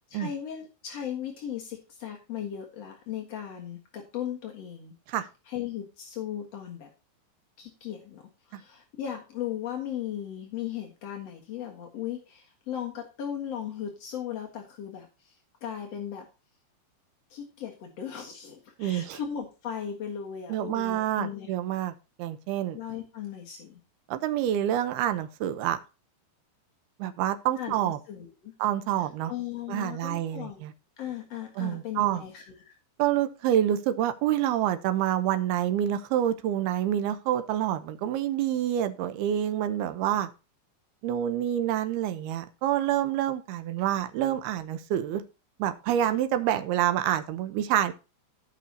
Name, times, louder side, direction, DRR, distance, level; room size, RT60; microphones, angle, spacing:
voice 1, 0.1-4.9 5.5-6.9 7.6-8.2 8.5-16.2 17.3-21.5 22.7-23.8 27.6-28.5 29.0-30.6 31.0-32.7, left 9 dB, 65° left, 1 dB, 1.6 m, -37 dB
voice 2, 18.8-19.2 20.5-22.8 24.1-25.8 27.0-28.0 28.6-29.3 29.7-30.7 31.6-32.2 33.0-40.3 41.0-45.2 45.6-47.9, right 11 dB, 80° right, 9 dB, 2.4 m, -27 dB
17.0 x 6.1 x 2.8 m, 0.30 s
omnidirectional pair, 5.4 m